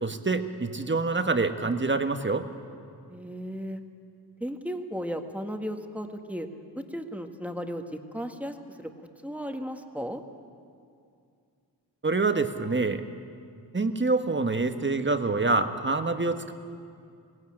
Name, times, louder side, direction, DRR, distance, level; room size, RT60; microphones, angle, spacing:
voice 1, 0.0-2.4 12.0-13.0 13.7-16.5, right 3 dB, 25° right, 8 dB, 1.4 m, -26 dB
voice 2, 3.1-3.8 4.4-6.5 6.7-8.9 9.2-10.2, equal, 5° right, 5 dB, 1.7 m, -35 dB
18.0 x 16.5 x 8.8 m, 2.4 s
cardioid pair, 55°, 42 cm